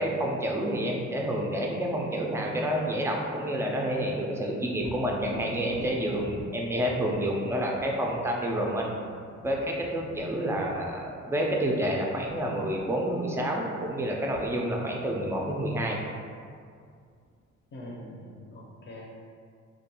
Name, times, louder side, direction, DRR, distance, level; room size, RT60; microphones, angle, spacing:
voice 1, 0.0-8.9 9.4-16.0, right 1 dB, 10° right, -1 dB, 0.3 m, -29 dB
Thunder, 4.7-12.4 16.0-16.1 16.6-17.5, equal, 80° left, 0.7 m, -45 dB
voice 2, 17.7-19.2, left 1 dB, 35° left, -3 dB, 0.6 m, -43 dB
2.4 x 2.2 x 2.8 m, 2.2 s
cardioid pair, 90°, 30 cm